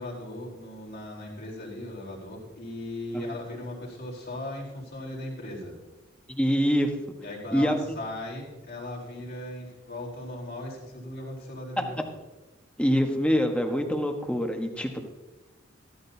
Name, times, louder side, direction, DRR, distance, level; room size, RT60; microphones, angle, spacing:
voice 1, 0.0-5.7 7.2-12.1 14.9-15.0, left 1 dB, 55° left, -3 dB, 4.0 m, -38 dB
voice 2, 6.3-6.9 7.5-8.0 11.8-11.9 12.8-15.0, equal, 5° left, 4 dB, 1.3 m, -25 dB
15.5 x 13.5 x 2.8 m, 1.1 s
head